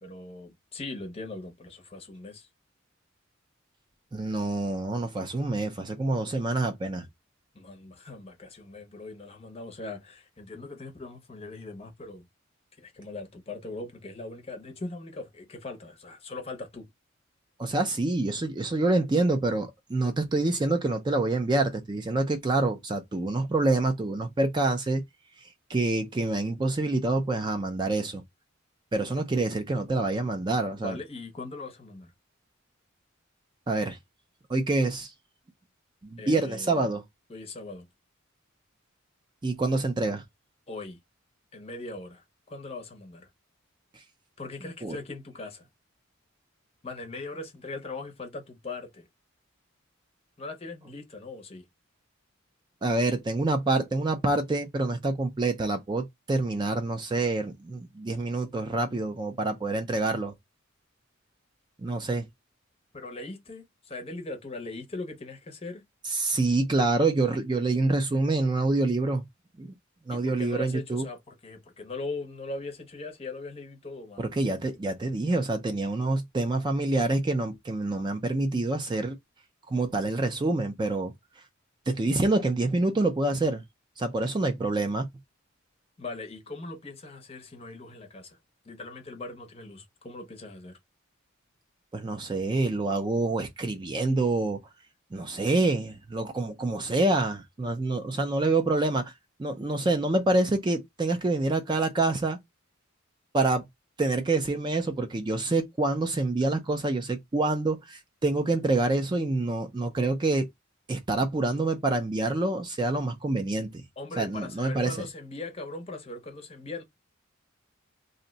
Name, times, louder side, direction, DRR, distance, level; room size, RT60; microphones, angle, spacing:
voice 1, 0.0-2.5 7.5-12.2 12.8-16.9 30.8-32.1 36.2-36.9 37.3-37.9 40.7-41.0 41.5-43.3 44.4-45.7 46.8-49.1 50.4-51.6 62.9-65.8 70.1-74.3 86.0-88.4 88.6-90.8 114.0-116.8, left 3 dB, 30° left, 0.6 m, -40 dB
voice 2, 4.1-7.1 17.6-25.0 25.7-28.2 28.9-31.0 33.7-34.0 34.5-35.1 36.0-37.0 39.4-40.2 44.8-45.0 52.8-60.3 61.8-62.2 66.1-69.2 69.6-69.7 70.1-71.0 74.2-79.2 79.7-81.1 81.9-83.6 84.0-85.1 91.9-94.6 95.1-99.1 99.4-102.4 103.3-103.6 104.0-110.5 110.9-113.8 114.2-115.1, right 2 dB, 20° right, 0.4 m, -27 dB
2.6 x 2.1 x 3.8 m
head